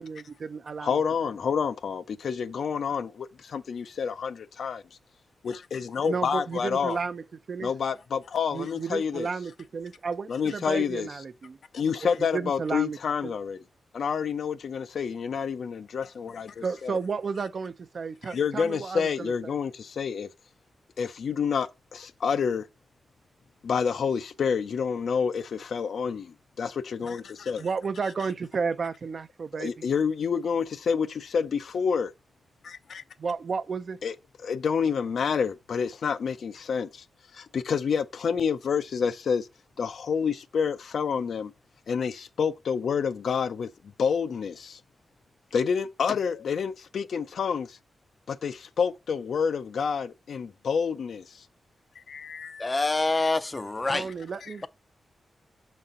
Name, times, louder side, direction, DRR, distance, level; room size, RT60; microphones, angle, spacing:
voice 1, 0.0-1.0 6.0-7.7 8.5-11.6 12.0-13.3 16.6-19.6 27.6-29.8 33.2-34.0 53.9-54.7, right 5 dB, 50° right, 0.5 m, -33 dB
voice 2, 0.8-4.8 5.4-7.0 7.6-9.3 10.3-11.1 11.7-13.6 13.9-17.0 18.3-20.3 21.0-22.7 23.6-27.7 29.6-32.1 32.6-33.0 34.0-34.1 34.4-37.0 37.3-39.5 39.8-41.5 41.9-43.7 44.0-44.8 45.5-47.8 48.3-51.4 52.0-52.7, left 6 dB, 75° left, 0.5 m, -28 dB
voice 3, 52.6-54.1, left 2 dB, 25° left, 0.4 m, -26 dB
6.6 x 4.2 x 3.7 m
wide cardioid pair, 130°, 0 cm